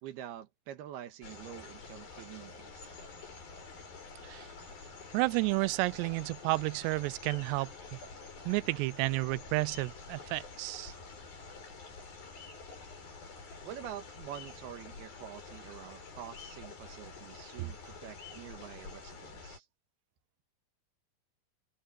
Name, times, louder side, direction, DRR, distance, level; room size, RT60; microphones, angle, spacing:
voice 1, 0.0-3.0 13.6-19.7, right 11 dB, 70° right, 3.3 m, -46 dB
sound 1, 1.2-19.6, left 4 dB, 60° left, 8.5 m, -48 dB
voice 2, 5.1-7.7 8.5-10.9, right 23 dB, 90° right, 2.7 m, -31 dB
omnidirectional pair, 4.8 m